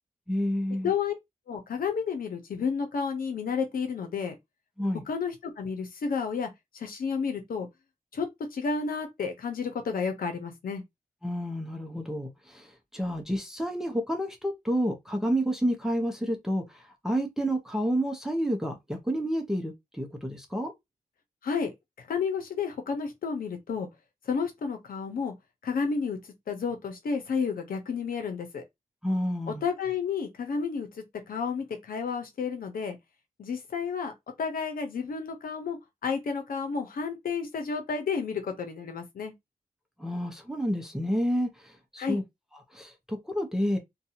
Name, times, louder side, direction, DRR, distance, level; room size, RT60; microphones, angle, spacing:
voice 1, 0.3-0.9 4.8-5.0 11.2-20.7 29.0-29.6 40.0-42.2 42.7-43.8, equal, 5° right, 0.7 m, -30 dB
voice 2, 1.5-4.3 5.1-7.7 8.1-8.3 8.5-10.8 21.4-21.7 22.0-23.9 24.3-25.3 25.6-26.2 26.5-28.6 29.5-33.0 33.4-34.1 34.4-39.3 42.0-42.2, left 5 dB, 80° left, 0.8 m, -31 dB
2.6 x 2.3 x 2.8 m
cardioid pair, 70°, 15 cm